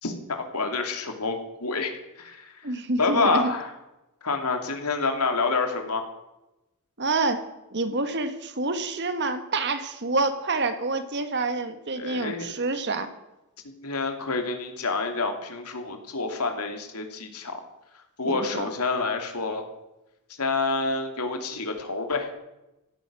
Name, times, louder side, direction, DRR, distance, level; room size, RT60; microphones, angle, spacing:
voice 1, 0.0-3.7 4.2-6.1 12.0-12.5 13.6-17.6 18.2-19.7 20.4-22.3, left 3 dB, 90° left, 5 dB, 2.8 m, -28 dB
voice 2, 2.6-3.5 7.0-7.4 7.7-13.1 18.2-18.7, right 3 dB, 50° right, 9 dB, 1.7 m, -27 dB
16.0 x 14.0 x 6.2 m, 0.95 s
head